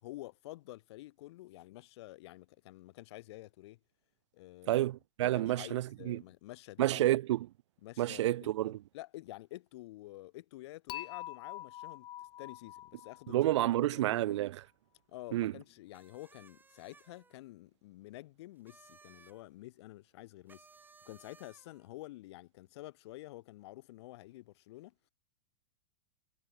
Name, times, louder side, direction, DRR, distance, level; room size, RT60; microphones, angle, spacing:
voice 1, 0.0-3.8 4.3-4.9 5.2-7.0 7.8-12.1 12.4-14.2 15.1-20.7 21.1-24.9, left 17 dB, 60° left, 3.7 m, -49 dB
voice 2, 4.7-6.2 6.8-7.5 8.0-8.8 13.3-14.6 15.3-15.5, right 14 dB, 70° right, 0.4 m, -30 dB
Dishes pots and pans / Chink clink, 10.9-14.0, left 14 dB, 30° left, 1.7 m, -46 dB
sound 1, 15.9-17.4 18.6-19.4 20.5-21.9, right 4 dB, 10° right, 5.2 m, -61 dB
hypercardioid pair, 125°, 16 cm